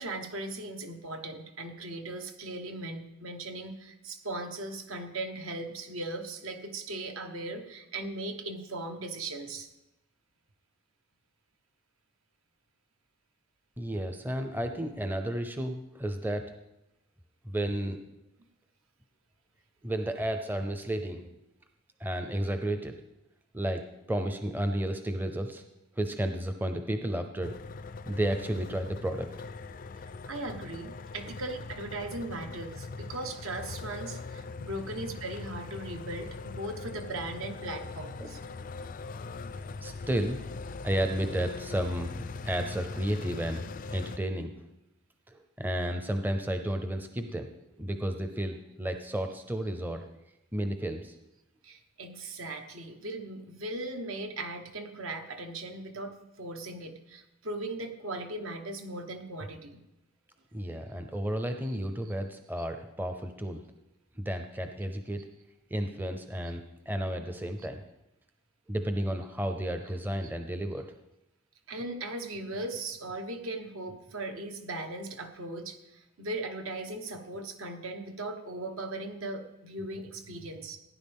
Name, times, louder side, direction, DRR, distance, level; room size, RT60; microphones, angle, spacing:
voice 1, 0.0-9.7 30.3-38.4 51.6-59.8 71.7-80.8, right 2 dB, 75° right, 5 dB, 1.3 m, -38 dB
voice 2, 13.8-16.5 17.4-18.0 19.8-21.2 22.0-23.0 23.5-23.8 24.1-25.6 26.0-27.5 28.1-29.3 38.2-38.3 39.8-40.4 40.8-43.6 43.9-44.5 45.3-47.5 47.8-50.1 50.5-51.1 60.5-63.6 64.1-65.2 65.7-67.8 68.7-70.9, right 1 dB, 10° right, 6 dB, 0.6 m, -32 dB
sound 1, 27.4-44.2, left 4 dB, 40° left, 0.3 m, -41 dB
16.0 x 9.9 x 3.6 m, 0.90 s
head